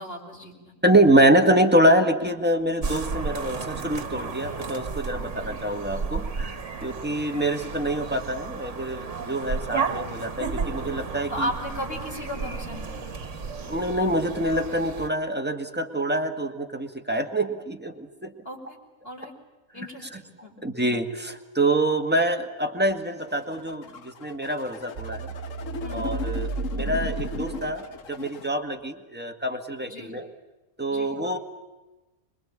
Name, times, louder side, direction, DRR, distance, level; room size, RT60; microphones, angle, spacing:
voice 1, 0.0-0.7 5.2-5.4 11.3-13.1 18.5-18.8 19.0-19.3 19.7-20.6 25.8-26.1 29.9-30.1 30.9-31.1, left 1 dB, 40° left, 0 dB, 5.3 m, -35 dB
voice 2, 0.8-11.5 13.6-18.3 20.1-25.3 25.9-30.3 30.8-31.4, right 1 dB, 5° right, 4 dB, 1.8 m, -25 dB
sound 1, 2.8-15.1, right 5 dB, 60° right, 1.8 m, -33 dB
sound 2, 23.2-28.5, left 6 dB, 65° left, 1.5 m, -37 dB
sound 3, 25.0-28.1, right 5 dB, 75° right, 1.5 m, -33 dB
26.0 x 22.0 x 8.7 m, 1.1 s
omnidirectional pair, 1.5 m